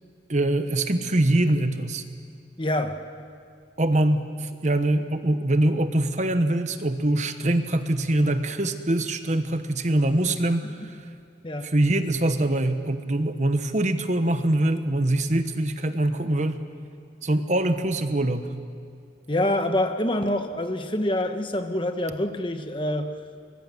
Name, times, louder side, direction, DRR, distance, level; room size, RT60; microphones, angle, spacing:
voice 1, 0.3-2.0 3.8-10.9 11.6-16.6 17.2-18.5, right 1 dB, 40° right, 9 dB, 1.0 m, -23 dB
voice 2, 2.6-3.0 10.6-10.9 11.4-11.7 19.3-23.1, left 1 dB, 25° left, 7 dB, 1.1 m, -26 dB
24.0 x 20.0 x 7.7 m, 2.3 s
head